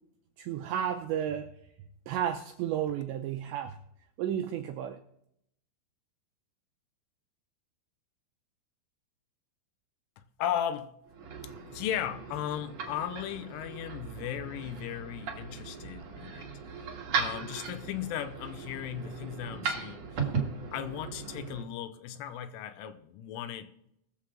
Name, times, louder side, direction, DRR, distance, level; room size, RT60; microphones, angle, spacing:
voice 1, 0.4-1.5 2.1-3.8 4.2-5.0, right 10 dB, 85° right, 2.5 m, -32 dB
voice 2, 10.2-11.0 11.4-16.5 16.8-16.9 17.1-20.1 20.7-23.7, left 10 dB, 80° left, 3.2 m, -36 dB
sound 1, 11.1-21.6, right 5 dB, 65° right, 1.6 m, -37 dB
21.0 x 7.3 x 3.7 m
omnidirectional pair, 5.9 m